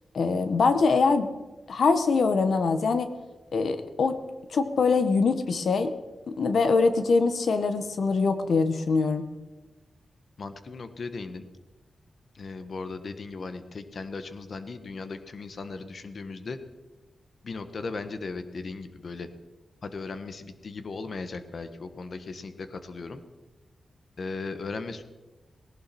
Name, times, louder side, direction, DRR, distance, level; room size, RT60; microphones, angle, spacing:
voice 1, 0.1-1.3 1.7-3.1 3.5-4.1 4.5-5.9 6.3-9.3, left 4 dB, 70° left, 9 dB, 1.3 m, -23 dB
voice 2, 10.4-11.4 12.3-16.6 17.4-19.3 19.8-23.2 24.2-25.0, left 4 dB, 55° left, 9 dB, 1.3 m, -37 dB
18.5 x 17.5 x 4.3 m, 1.2 s
wide cardioid pair, 125°, 0 cm